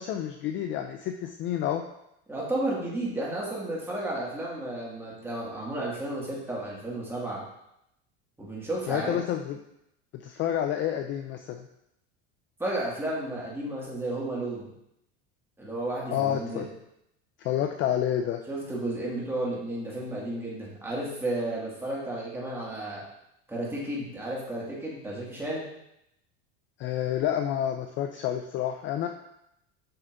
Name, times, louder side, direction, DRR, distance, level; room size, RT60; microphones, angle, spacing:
voice 1, 0.0-1.8 8.9-9.6 10.1-11.7 16.1-16.7 17.4-18.4 26.8-29.1, left 10 dB, 40° left, 6 dB, 0.4 m, -29 dB
voice 2, 2.3-7.4 8.4-9.2 12.6-14.7 15.6-16.6 18.5-23.0 23.5-25.7, right 1 dB, 5° right, -6 dB, 2.0 m, -32 dB
7.6 x 5.5 x 2.6 m, 0.81 s
supercardioid pair, 135°, 32 cm